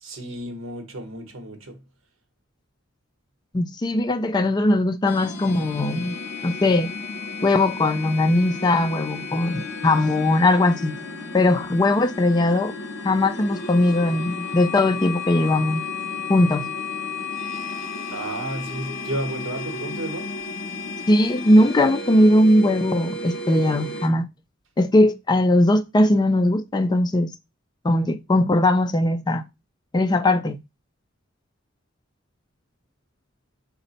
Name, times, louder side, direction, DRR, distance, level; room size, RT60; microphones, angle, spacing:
voice 1, 0.0-1.8 18.1-20.4, right 1 dB, 75° right, 0.9 m, -32 dB
voice 2, 3.5-6.2 6.4-6.9 7.4-11.0 11.3-12.7 13.0-15.8 16.3-16.7 21.1-24.3 24.8-27.3 27.8-29.5 29.9-30.6, left 1 dB, 20° left, 0.4 m, -19 dB
sound 1, 5.1-24.1, left 3 dB, 60° left, 0.8 m, -33 dB
4.0 x 2.1 x 3.9 m
head